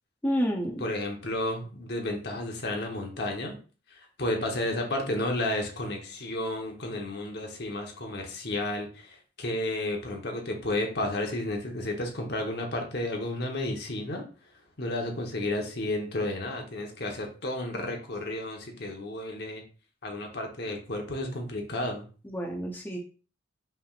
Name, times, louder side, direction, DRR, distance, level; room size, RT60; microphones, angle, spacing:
voice 1, 0.2-0.8 22.2-23.0, equal, 10° left, 0 dB, 0.6 m, -29 dB
voice 2, 0.8-3.6 3.9-14.2 14.8-19.6 20.0-22.1, left 1 dB, 60° left, 2 dB, 1.0 m, -32 dB
5.7 x 3.4 x 2.4 m, 0.37 s
head